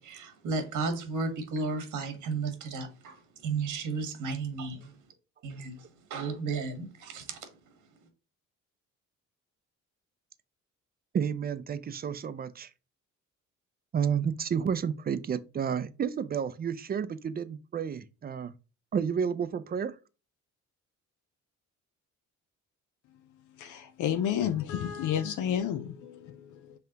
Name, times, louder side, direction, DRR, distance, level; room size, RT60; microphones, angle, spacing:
voice 1, 0.0-4.9 5.4-7.5, right 4 dB, 85° right, 1.4 m, -34 dB
voice 2, 11.1-12.7 13.9-18.5 18.9-19.9, right 7 dB, 30° right, 0.5 m, -31 dB
voice 3, 23.6-26.7, left 9 dB, 80° left, 0.6 m, -31 dB
5.6 x 3.3 x 2.8 m
cardioid pair, 90°, 30 cm